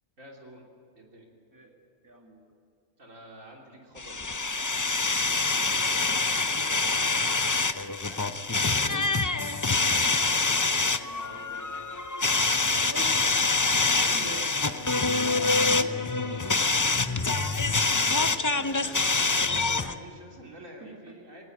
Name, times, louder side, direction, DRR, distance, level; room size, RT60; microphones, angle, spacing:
voice 1, 0.2-0.6 0.9-1.3 3.0-4.8 8.0-9.2 11.0-11.6 13.8-14.1 18.0-21.5, right 1 dB, 85° right, -1 dB, 3.7 m, -48 dB
voice 2, 2.0-2.5 6.1-7.5 10.0-10.6 12.7-13.3 14.1-14.5 15.1-17.2 17.5-18.7 20.8-21.2, right 1 dB, 15° right, 0 dB, 2.4 m, -45 dB
sound 1, 4.0-19.9, left 3 dB, 25° left, 0.4 m, -25 dB
18.5 x 18.0 x 8.2 m, 2.2 s
omnidirectional pair, 1.3 m